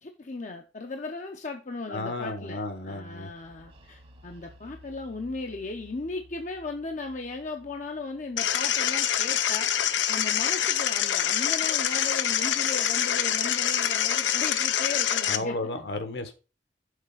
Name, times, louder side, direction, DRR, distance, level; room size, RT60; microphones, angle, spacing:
voice 1, 0.0-15.7, left 3 dB, 45° left, 0.6 m, -37 dB
voice 2, 1.9-3.3 15.3-16.3, left 2 dB, 60° left, 1.1 m, -33 dB
sound 1, 3.1-10.8, equal, 30° right, 0.9 m, -55 dB
sound 2, 8.4-15.4, left 10 dB, 85° left, 0.6 m, -25 dB
6.5 x 4.0 x 5.4 m
head